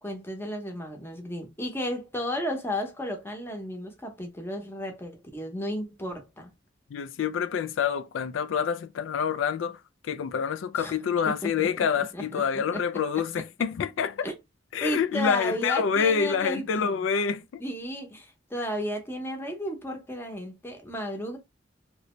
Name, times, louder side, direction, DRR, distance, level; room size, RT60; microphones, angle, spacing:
voice 1, 0.0-6.5 10.7-11.0 11.3-12.4 12.7-12.8 14.2-14.3 14.8-17.0 17.6-21.4, equal, 10° left, 0.8 m, -33 dB
voice 2, 6.9-14.3 14.7-17.6, left 6 dB, 90° left, 0.3 m, -27 dB
3.0 x 2.6 x 3.0 m
head